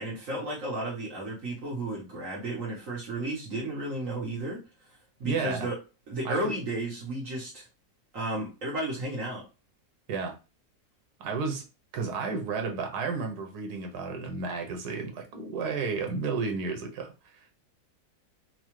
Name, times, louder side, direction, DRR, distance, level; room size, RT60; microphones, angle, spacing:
voice 1, 0.0-4.6 5.2-5.8 6.1-7.7 8.1-9.4, right 1 dB, 55° right, 1.5 m, -33 dB
voice 2, 5.2-5.7 6.2-6.5 10.1-10.4 11.2-11.6 11.9-17.1, right 4 dB, 80° right, 1.4 m, -32 dB
4.6 x 2.3 x 3.1 m
omnidirectional pair, 1.7 m